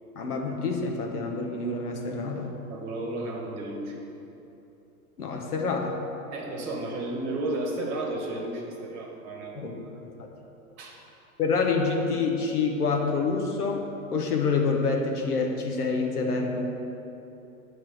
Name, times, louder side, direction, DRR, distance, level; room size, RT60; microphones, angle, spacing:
voice 1, 0.2-2.5 5.2-6.0 9.6-9.7 11.4-13.8 14.1-16.7, left 4 dB, 90° left, 1 dB, 0.9 m, -27 dB
voice 2, 2.7-4.0 6.3-9.8 10.8-11.0, right 2 dB, 40° right, -1 dB, 1.1 m, -33 dB
7.4 x 3.1 x 6.1 m, 2.9 s
hypercardioid pair, 105°, 44 cm